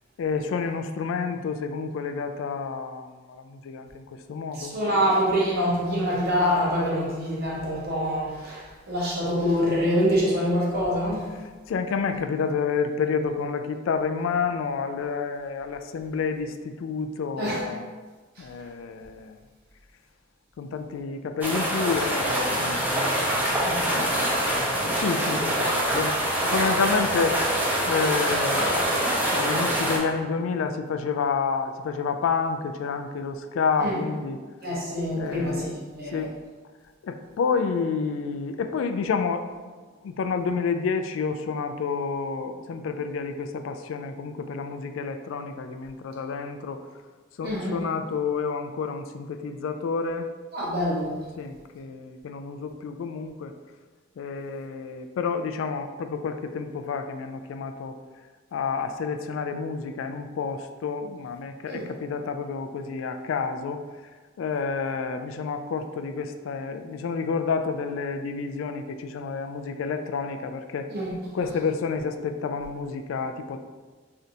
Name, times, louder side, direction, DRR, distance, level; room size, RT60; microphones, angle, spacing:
voice 1, 0.2-4.8 11.7-17.9 18.4-19.4 20.6-23.1 23.8-27.4 27.9-34.4 35.2-35.8 36.1-36.4 37.0-39.4 40.0-46.8 47.4-50.3 51.4-53.5 54.2-57.9 58.5-63.8 64.4-70.9 71.3-73.6, left 5 dB, 85° left, 7 dB, 0.3 m, -29 dB
voice 2, 4.5-11.3 17.4-17.6 18.4-18.5 23.6-23.8 33.8-34.0 34.6-36.2 47.4-47.7 50.5-51.2 61.7-61.8 70.9-71.1, equal, 55° right, -5 dB, 1.1 m, -25 dB
sound 1, 21.4-30.0, right 1 dB, 10° right, 0.6 m, -25 dB
3.8 x 3.3 x 2.7 m, 1.4 s
head